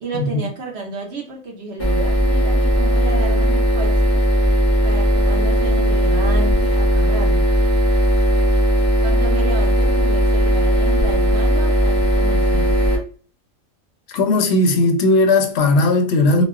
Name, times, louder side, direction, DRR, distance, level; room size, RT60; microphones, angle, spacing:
voice 1, 0.0-4.2 4.8-7.5 9.0-12.9, right 3 dB, 60° right, 0.9 m, -31 dB
sound 1, 1.8-13.0, equal, 20° left, 0.4 m, -17 dB
voice 2, 14.1-16.4, left 2 dB, 60° left, 0.7 m, -16 dB
3.0 x 2.2 x 2.3 m
omnidirectional pair, 1.4 m